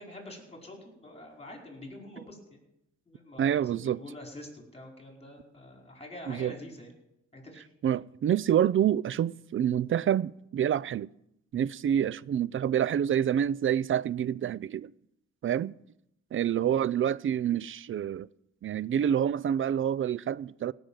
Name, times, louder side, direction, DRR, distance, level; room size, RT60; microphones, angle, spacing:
voice 1, 0.0-2.6 3.1-6.9 7.3-7.7, left 1 dB, 20° left, 5.0 m, -46 dB
voice 2, 3.4-4.0 6.3-6.5 7.8-11.1 11.5-14.9 15.4-15.7 16.3-18.3 18.6-20.7, right 9 dB, 45° right, 0.4 m, -27 dB
17.5 x 6.6 x 9.0 m
cardioid pair, 90°, 30 cm